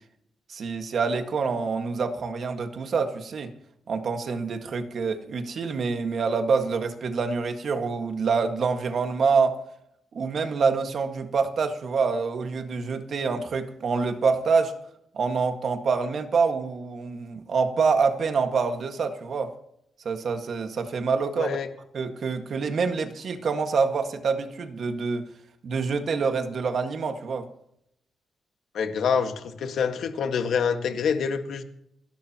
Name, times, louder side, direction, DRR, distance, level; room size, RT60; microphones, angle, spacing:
voice 1, 0.5-3.5 3.9-9.6 10.1-14.7 15.1-19.5 20.1-21.6 21.9-25.2 25.6-27.5, right 5 dB, 50° right, 6 dB, 1.7 m, -26 dB
voice 2, 21.4-21.7 28.7-31.6, left 6 dB, 70° left, 6 dB, 1.7 m, -26 dB
28.5 x 12.0 x 3.0 m, 0.76 s
wide cardioid pair, 165°, 0 cm